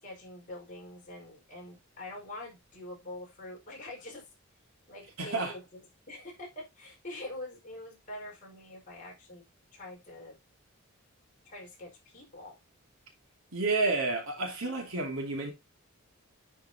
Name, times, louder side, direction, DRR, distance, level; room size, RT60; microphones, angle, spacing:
voice 1, 0.0-4.3 4.9-5.8 6.1-9.5 9.7-10.4 11.5-12.6, left 1 dB, 35° left, 5.0 m, -45 dB
voice 2, 5.2-5.5 13.5-15.5, right 3 dB, 70° right, 2.6 m, -30 dB
9.7 x 6.1 x 2.9 m
head